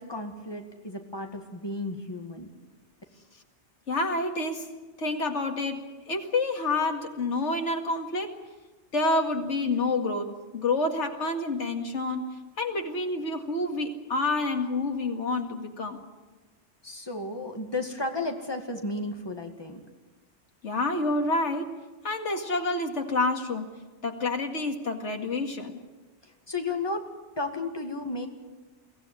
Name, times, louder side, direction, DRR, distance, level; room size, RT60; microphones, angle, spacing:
voice 1, 0.0-2.5 16.8-19.8 26.2-27.1 27.4-28.3, left 2 dB, 20° left, 4 dB, 2.1 m, -33 dB
voice 2, 3.9-8.3 8.9-16.0 20.6-23.7 24.0-25.8, left 2 dB, 90° left, 4 dB, 2.4 m, -28 dB
23.0 x 16.0 x 9.7 m, 1.2 s
omnidirectional pair, 1.2 m